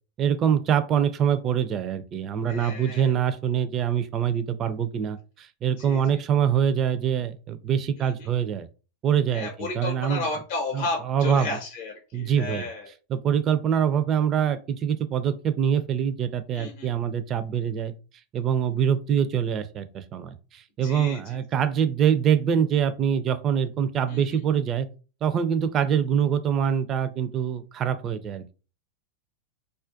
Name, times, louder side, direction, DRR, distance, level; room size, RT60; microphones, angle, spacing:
voice 1, 0.2-8.7 9.0-10.2 10.7-11.5 12.1-12.7 13.1-17.9 18.3-24.9 25.2-28.5, right 8 dB, 35° right, 0.3 m, -24 dB
voice 2, 2.5-3.1 5.8-6.2 8.0-8.3 9.3-12.9 16.5-16.9 20.8-21.4 24.1-24.4, left 3 dB, 55° left, 0.6 m, -33 dB
2.3 x 2.1 x 2.5 m
hypercardioid pair, 95°, 0 cm